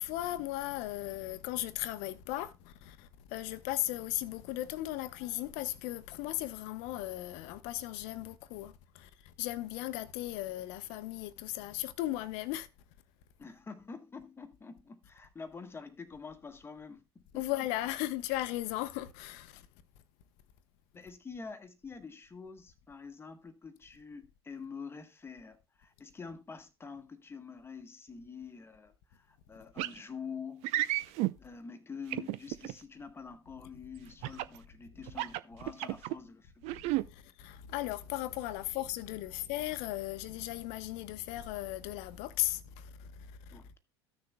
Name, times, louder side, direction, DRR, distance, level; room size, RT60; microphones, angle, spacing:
voice 1, 0.0-12.7 17.3-19.7 37.0-43.6, left 15 dB, 55° left, 0.8 m, -37 dB
voice 2, 13.4-17.5 20.9-30.7 31.4-36.6 43.5-43.8, left 5 dB, 15° left, 1.2 m, -47 dB
sound 1, 29.8-30.0 30.6-31.3 32.1-32.7 34.2-34.6 35.1-36.2 36.6-37.0, right 17 dB, 50° right, 0.5 m, -32 dB
14.5 x 6.5 x 2.2 m
figure-of-eight pair, 75°, 14 cm